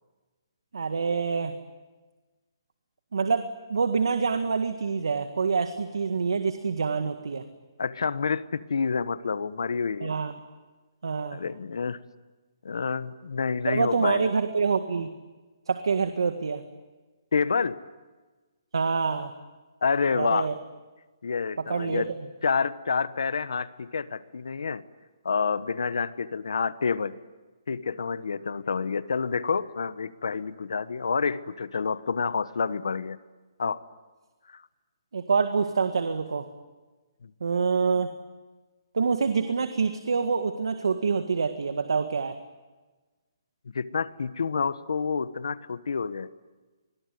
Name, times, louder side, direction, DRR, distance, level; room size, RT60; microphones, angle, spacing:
voice 1, 0.7-1.5 3.1-7.5 10.0-10.3 11.0-11.4 13.7-15.1 15.7-16.6 18.7-19.3 20.1-20.5 21.6-22.2 35.1-36.5 37.4-38.1 38.9-42.4, right 5 dB, 85° right, 8 dB, 1.8 m, -26 dB
voice 2, 7.8-10.1 11.3-12.0 12.6-14.3 17.3-17.8 19.8-20.5 21.2-22.1 22.4-24.8 25.2-27.2 27.7-33.2 33.6-33.8 34.5-34.6 37.2-37.3 43.7-46.3, left 5 dB, 80° left, 15 dB, 1.2 m, -28 dB
26.5 x 22.0 x 9.4 m, 1.2 s
hypercardioid pair, 170°, 2 cm